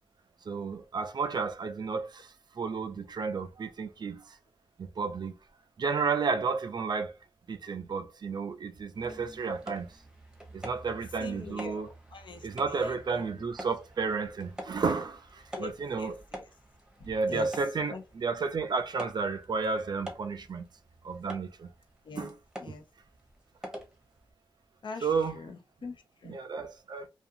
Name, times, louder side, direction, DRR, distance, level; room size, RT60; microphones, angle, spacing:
voice 1, 0.5-4.4 4.8-5.3 5.8-7.2 7.5-9.9 10.5-11.9 12.4-16.2 17.1-20.7 21.0-21.7 22.2-22.3 25.0-25.4 26.2-27.1, right 4 dB, 50° right, 0.4 m, -32 dB
sound 1, 8.9-24.3, right 1 dB, 10° right, 0.8 m, -47 dB
voice 2, 11.2-13.5 15.6-15.7 16.0-16.5 17.0-17.6 17.9-18.0 22.0-22.3 22.6-22.8 24.8-26.4, left 4 dB, 60° left, 0.6 m, -43 dB
2.5 x 2.3 x 2.7 m
wide cardioid pair, 85°, 9 cm